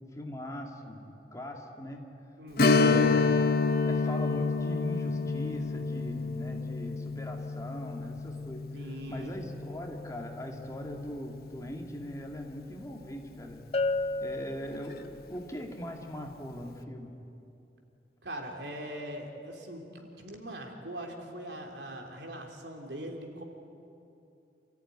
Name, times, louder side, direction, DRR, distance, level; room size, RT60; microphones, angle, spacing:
voice 1, 0.1-2.0 2.7-3.5 3.8-13.6 14.2-17.1, left 1 dB, 20° left, 2 dB, 2.0 m, -40 dB
voice 2, 2.4-2.9 8.7-9.4 18.2-23.4, right 1 dB, 75° right, 2 dB, 3.2 m, -41 dB
Strum, 2.6-11.8 12.1-12.2 14.7-14.9 15.4-15.5, left 4 dB, 55° left, 0.9 m, -29 dB
Bell, 13.7-15.4, left 2 dB, 35° left, 0.6 m, -32 dB
28.0 x 14.0 x 9.6 m, 2.8 s
head